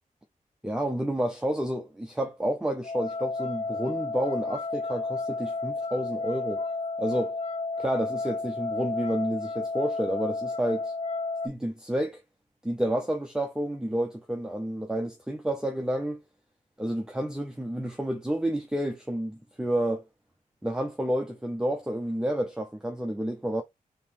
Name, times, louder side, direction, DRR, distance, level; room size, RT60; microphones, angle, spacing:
voice 1, 0.6-6.6 7.0-7.4 7.8-10.9 11.4-12.2 12.6-16.2 16.8-20.0 20.6-23.6, right 1 dB, 5° right, 0.6 m, -30 dB
sound 1, 2.8-11.5, left 3 dB, 45° left, 0.5 m, -32 dB
3.6 x 2.9 x 3.1 m
wide cardioid pair, 125°, 14 cm